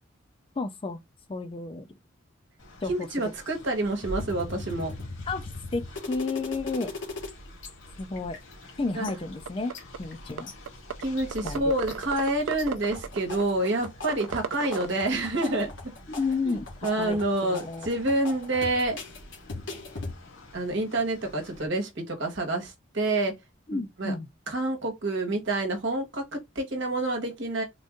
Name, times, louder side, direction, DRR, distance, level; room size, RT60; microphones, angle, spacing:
voice 1, 0.6-1.0 1.3-1.9 2.8-3.1 5.3-6.9 8.0-8.4 8.8-9.7 10.0-10.5 11.4-11.6 16.1-16.7 17.0-17.9 23.7-24.3, left 3 dB, 25° left, 0.4 m, -31 dB
Train, 2.6-21.7, left 1 dB, 85° left, 2.0 m, -49 dB
voice 2, 2.9-4.9 8.9-9.1 11.0-15.9 16.4-19.0 20.5-23.3 23.7-24.1 24.5-27.6, right 2 dB, 60° right, 1.2 m, -28 dB
sound 1, 4.0-7.3 7.6-7.7 8.0-8.7 9.0-10.5 11.0-11.5 11.9-12.6 12.9-20.1, left 2 dB, 60° left, 1.4 m, -39 dB
sound 2, 9.1-9.2 9.5-10.0 10.4-10.5 10.7-11.0 11.3-14.9, right 7 dB, 80° right, 0.4 m, -33 dB
3.8 x 2.5 x 3.6 m
head